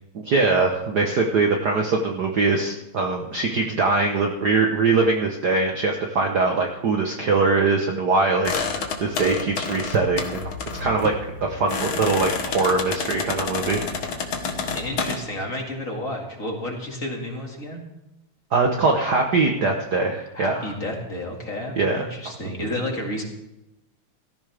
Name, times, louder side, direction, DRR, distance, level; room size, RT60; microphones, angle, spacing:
voice 1, 0.1-10.4 10.8-11.1 11.4-13.8 18.5-20.6 21.8-22.1, right 3 dB, 75° right, 2 dB, 0.9 m, -22 dB
sound 1, 8.4-15.2, left 5 dB, 50° left, 1.8 m, -29 dB
voice 2, 14.7-17.8 20.3-23.2, left 1 dB, 30° left, 1 dB, 2.2 m, -31 dB
17.5 x 14.0 x 3.5 m, 0.94 s
omnidirectional pair, 3.4 m